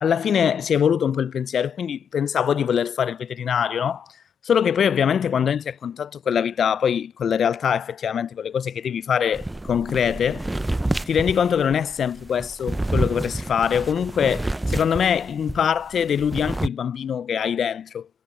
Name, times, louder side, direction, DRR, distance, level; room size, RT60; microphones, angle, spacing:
voice 1, 0.0-4.1 4.4-10.5 11.1-18.1, left 8 dB, 60° left, 0.3 m, -23 dB
sound 1, 9.3-15.6 15.9-16.7, right 2 dB, 15° right, 0.5 m, -28 dB
cardioid pair, 85°, 0 cm